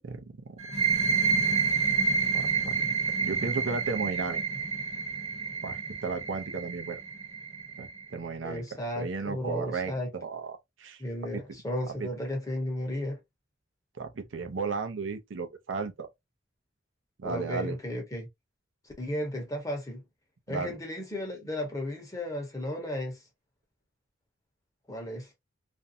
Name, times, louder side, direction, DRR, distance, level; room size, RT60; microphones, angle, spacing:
voice 1, 0.0-0.6 2.3-2.9 3.2-4.4 5.6-7.0 7.8-8.6 9.0-11.0 11.3-11.4 12.0-12.1 14.0-16.1 17.2-17.8 20.5-20.8, right 4 dB, 80° right, 0.5 m, -34 dB
sound 1, 0.6-8.0, right 5 dB, 35° right, 0.9 m, -29 dB
voice 2, 8.4-10.1 11.0-13.2 17.2-18.3 19.0-20.0 20.5-23.2 24.9-25.3, left 1 dB, 20° left, 0.9 m, -34 dB
2.5 x 2.1 x 2.6 m
head